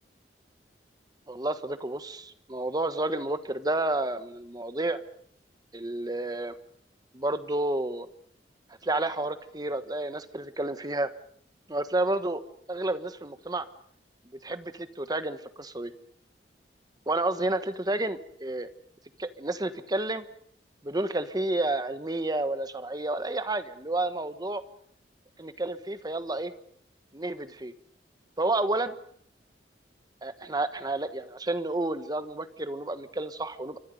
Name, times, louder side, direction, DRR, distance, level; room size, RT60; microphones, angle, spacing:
voice 1, 1.3-5.0 5.7-6.5 7.1-8.1 8.8-11.1 11.7-12.4 12.7-13.7 14.4-15.9 17.1-18.7 19.2-20.2 20.8-24.6 25.4-26.5 27.1-27.7 28.4-28.9 30.2-33.8, right 2 dB, 25° right, 11 dB, 1.2 m, -30 dB
28.5 x 25.0 x 5.3 m, 0.65 s
head